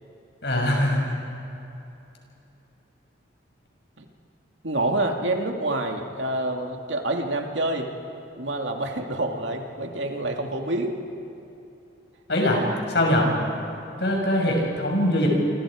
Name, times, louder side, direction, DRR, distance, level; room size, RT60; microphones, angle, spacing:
voice 1, 0.4-1.1 12.3-12.6 12.9-13.3 14.0-15.3, left 1 dB, 65° left, 0 dB, 6.1 m, -22 dB
voice 2, 4.6-7.9 8.4-11.0, right 2 dB, 75° right, 2 dB, 2.3 m, -27 dB
28.5 x 25.5 x 5.0 m, 2.9 s
head